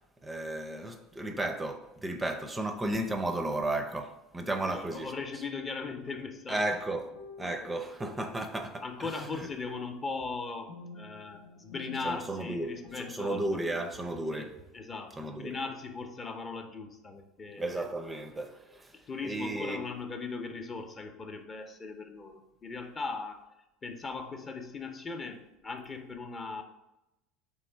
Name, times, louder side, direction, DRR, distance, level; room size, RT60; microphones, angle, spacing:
voice 1, 0.2-5.1 6.5-7.1 7.4-9.5 12.0-14.6 15.2-15.6 17.6-19.0 19.2-19.9, right 1 dB, 15° right, 0.5 m, -34 dB
voice 2, 4.5-6.7 7.4-7.7 8.8-13.6 14.3-14.5 14.7-17.8 19.1-23.4 23.8-26.6, left 4 dB, 30° left, 0.6 m, -39 dB
sound 1, 5.3-5.6 7.1-8.2 10.7-14.4, left 3 dB, 70° left, 0.9 m, -50 dB
3.6 x 3.1 x 4.5 m
hypercardioid pair, 85°, 0 cm